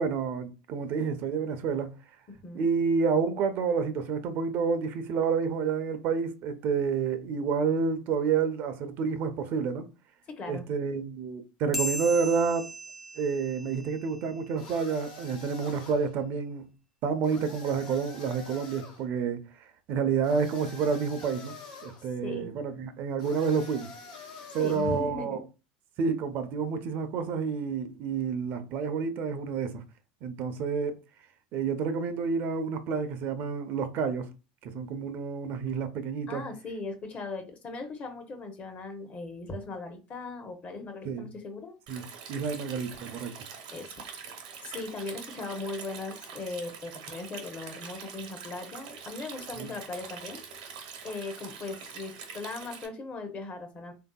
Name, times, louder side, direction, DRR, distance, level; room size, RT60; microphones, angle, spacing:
voice 1, 0.0-1.9 2.5-9.9 10.5-12.7 13.2-16.7 17.0-19.4 19.9-21.5 21.8-23.9 24.5-25.4 26.0-29.8 30.2-31.0 31.5-34.3 34.6-36.4 41.0-41.3 41.9-42.0 42.3-43.4 49.6-49.7, right 5 dB, 55° right, 0.5 m, -29 dB
voice 2, 10.4-10.7 22.2-22.5 24.6-25.4 36.3-41.8 43.7-44.0 44.6-50.4 51.0-53.9, left 3 dB, 35° left, 0.7 m, -38 dB
sound 1, 11.7-14.6, equal, ahead, 0.5 m, -37 dB
sound 2, 14.6-16.1 17.2-19.0 20.2-22.0 23.2-25.0, left 3 dB, 80° left, 1.0 m, -47 dB
Stream, 41.9-52.9, right 6 dB, 80° right, 0.8 m, -44 dB
3.3 x 2.6 x 2.2 m
supercardioid pair, 105°, 4 cm